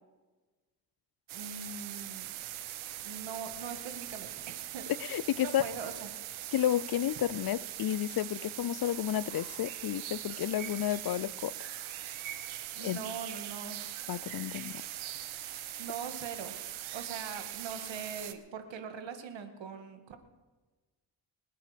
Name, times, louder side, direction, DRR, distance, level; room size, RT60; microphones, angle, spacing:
voice 1, 1.3-2.3 3.0-6.1 12.8-13.8 14.7-14.8 15.8-16.6 16.9-20.2, right 6 dB, 70° right, 2.1 m, -42 dB
sound 1, 1.3-18.3, right 13 dB, 85° right, 1.1 m, -41 dB
voice 2, 5.0-5.6 6.5-11.5 12.8-13.0 14.1-14.8 15.4-15.5, left 12 dB, 50° left, 0.5 m, -31 dB
25.0 x 8.5 x 5.1 m
cardioid pair, 70°, 47 cm